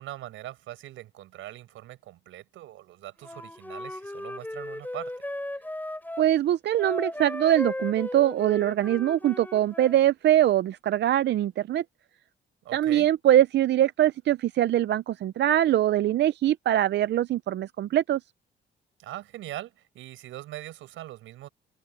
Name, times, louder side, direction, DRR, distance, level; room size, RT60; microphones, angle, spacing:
voice 1, 0.0-5.1 12.6-13.1 19.0-21.5, right 14 dB, 90° right, 5.9 m, -41 dB
Wind instrument woodwind instrument, 3.2-6.3 6.8-10.0, left 1 dB, 10° left, 6.4 m, -36 dB
voice 2, 6.2-11.8 12.7-18.2, right 12 dB, 60° right, 0.5 m, -23 dB
cardioid pair, 90°, 20 cm